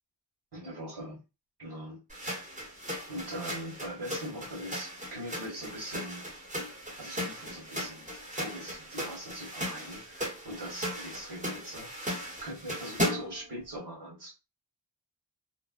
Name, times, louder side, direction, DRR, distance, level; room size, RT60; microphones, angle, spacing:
voice 1, 0.5-1.2 1.6-2.0 2.3-2.5 3.1-6.3 7.0-14.5, equal, 65° right, -1 dB, 1.4 m, -42 dB
sound 1, 2.1-13.4, equal, 15° right, 0.9 m, -37 dB
2.5 x 2.0 x 2.4 m, 0.27 s
cardioid pair, 60°, 43 cm